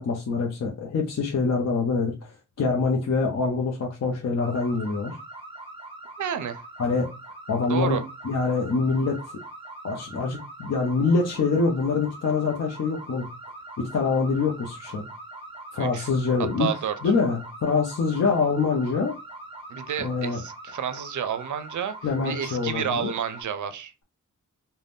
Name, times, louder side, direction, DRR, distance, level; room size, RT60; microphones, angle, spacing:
voice 1, 0.0-5.2 6.8-7.1 7.5-8.0 8.2-9.2 9.8-13.3 13.8-15.0 15.7-16.7 17.0-19.1 20.0-20.4 22.0-23.1, left 4 dB, 55° left, 0.6 m, -25 dB
sound 1, 4.4-23.4, right 2 dB, 15° right, 0.8 m, -42 dB
voice 2, 6.2-6.6 7.7-8.0 15.8-16.1 16.6-16.9 19.7-22.0 22.2-23.9, right 8 dB, 70° right, 0.5 m, -30 dB
2.5 x 2.1 x 3.4 m
wide cardioid pair, 85°, 31 cm